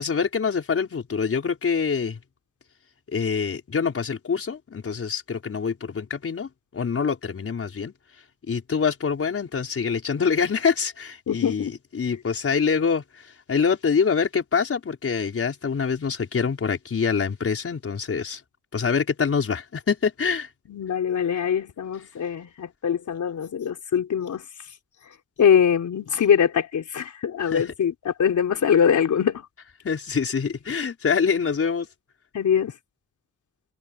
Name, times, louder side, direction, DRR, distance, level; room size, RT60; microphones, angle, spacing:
voice 1, 0.0-2.2 3.1-7.9 8.5-18.4 18.7-20.5 27.4-27.7 29.8-31.9, left 6 dB, 50° left, 5.1 m, -25 dB
voice 2, 20.7-24.4 25.4-29.4 32.3-32.7, left 8 dB, 85° left, 4.2 m, -22 dB
wide cardioid pair, 145°, 29 cm